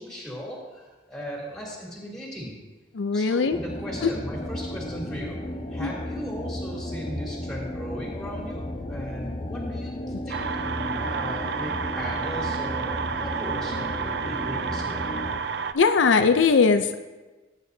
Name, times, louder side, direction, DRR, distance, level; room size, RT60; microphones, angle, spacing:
voice 1, 0.0-2.5 3.1-5.4 5.7-9.9 10.2-15.1, equal, 5° left, -5 dB, 2.9 m, -37 dB
voice 2, 3.0-3.6 5.8-5.9 15.7-17.0, left 5 dB, 85° left, 8 dB, 0.5 m, -20 dB
sound 1, 3.5-15.4, left 1 dB, 30° left, 0.5 m, -34 dB
sound 2, 10.3-15.7, right 6 dB, 65° right, 0.5 m, -30 dB
17.5 x 9.0 x 2.7 m, 1.2 s
head